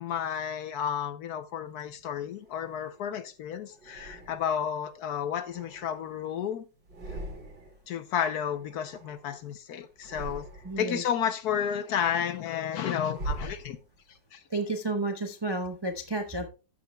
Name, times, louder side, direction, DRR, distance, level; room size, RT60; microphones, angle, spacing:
voice 1, 0.0-6.6 7.9-10.4 10.8-13.8 14.3-14.4, left 8 dB, 65° left, 1.1 m, -31 dB
sound 1, 1.9-3.1 3.8-4.7 5.2-6.4 6.8-7.9 8.1-9.5 9.9-11.0 11.4-14.2, right 2 dB, 70° right, 3.8 m, -43 dB
voice 2, 10.6-11.0 14.5-16.5, right 2 dB, 30° right, 0.4 m, -31 dB
13.0 x 8.5 x 2.2 m
omnidirectional pair, 2.0 m